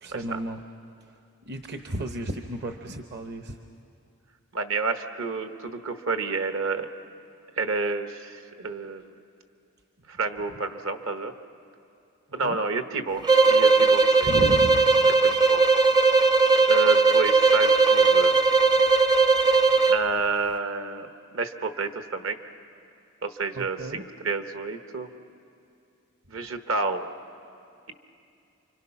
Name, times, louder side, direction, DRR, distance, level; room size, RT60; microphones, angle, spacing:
voice 1, 0.0-0.6 1.5-3.6 12.4-12.6 14.2-14.8 23.5-24.0, right 1 dB, 50° right, 5 dB, 0.9 m, -33 dB
voice 2, 4.5-6.9 7.6-9.0 10.1-11.3 12.3-14.3 15.2-15.6 16.7-18.3 19.9-22.4 23.2-25.1 26.3-27.1, right 4 dB, 65° right, 7 dB, 1.2 m, -30 dB
sound 1, 13.2-20.0, right 4 dB, 20° right, 0.5 m, -19 dB
29.0 x 25.0 x 5.9 m, 2.5 s
head